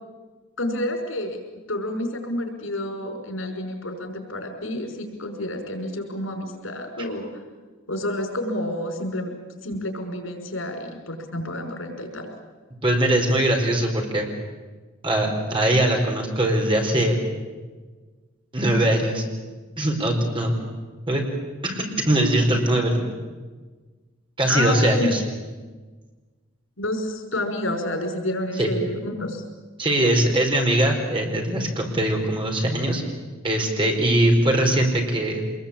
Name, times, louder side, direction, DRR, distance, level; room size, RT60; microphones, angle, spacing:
voice 1, 0.6-1.4 1.7-7.3 7.9-9.3 9.6-12.3 24.5-25.1 26.8-29.4, left 1 dB, 90° left, 4 dB, 5.7 m, -29 dB
voice 2, 12.8-14.3 15.0-17.2 18.5-19.2 19.8-20.5 21.1-21.2 21.6-23.0 24.4-25.2 28.6-28.7 29.8-33.0 33.4-35.4, right 1 dB, 25° right, 2 dB, 4.6 m, -21 dB
25.5 x 21.5 x 8.8 m, 1.3 s
head